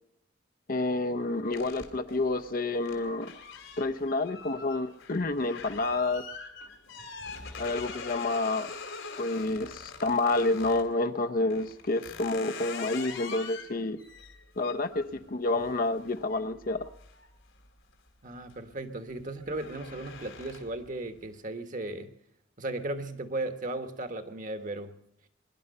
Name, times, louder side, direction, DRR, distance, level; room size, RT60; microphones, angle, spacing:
voice 1, 0.7-3.3 3.8-6.3 7.6-8.7 9.2-14.0 14.6-16.9, left 2 dB, 50° left, 0.8 m, -29 dB
sound 1, 1.5-10.9 11.5-17.9 18.3-18.7 19.0-20.9, left 5 dB, 85° left, 2.8 m, -44 dB
voice 2, 18.2-22.1 22.6-25.0, right 2 dB, 45° right, 1.5 m, -36 dB
23.5 x 11.0 x 5.5 m
head